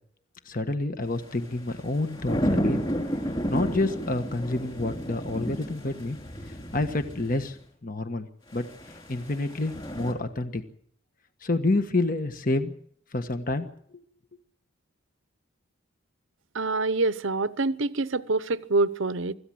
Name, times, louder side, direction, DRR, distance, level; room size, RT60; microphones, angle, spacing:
voice 1, 0.4-2.8 3.5-6.2 6.7-7.6 7.8-8.3 8.5-8.7 9.1-10.6 11.4-12.7 13.1-13.7, left 2 dB, 40° left, 1.4 m, -28 dB
sound 1, 1.2-7.5 8.5-10.1, equal, 25° left, 4.5 m, -32 dB
voice 2, 16.5-19.3, right 3 dB, 65° right, 0.8 m, -26 dB
25.0 x 14.5 x 7.7 m
head